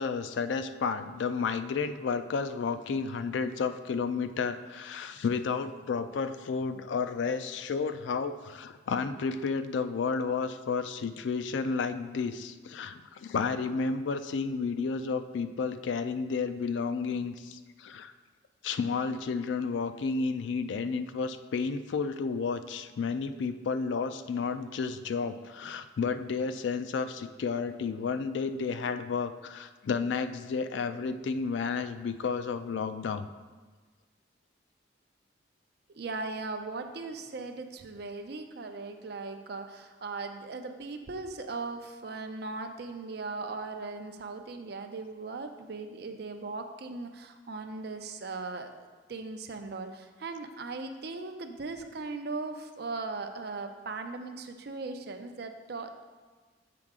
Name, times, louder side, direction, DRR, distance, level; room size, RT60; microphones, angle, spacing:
voice 1, 0.0-18.1 18.6-33.3, left 5 dB, 70° left, 11 dB, 0.3 m, -32 dB
voice 2, 35.9-56.0, right 3 dB, 55° right, 6 dB, 0.5 m, -38 dB
7.6 x 4.8 x 3.6 m, 1.4 s
head